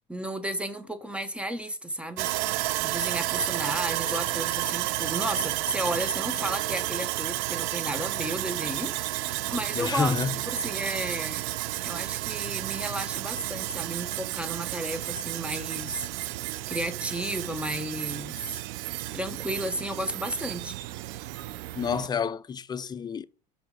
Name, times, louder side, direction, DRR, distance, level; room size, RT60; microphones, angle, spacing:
voice 1, 0.1-2.3 2.8-11.5 11.8-18.6 19.1-20.7, equal, 5° right, 1.0 m, -33 dB
Sawing, 2.2-22.1, right 17 dB, 75° right, 0.5 m, -32 dB
voice 2, 9.7-10.4 21.7-23.2, left 6 dB, 20° left, 0.5 m, -29 dB
5.6 x 5.2 x 4.9 m
supercardioid pair, 95°, 19 cm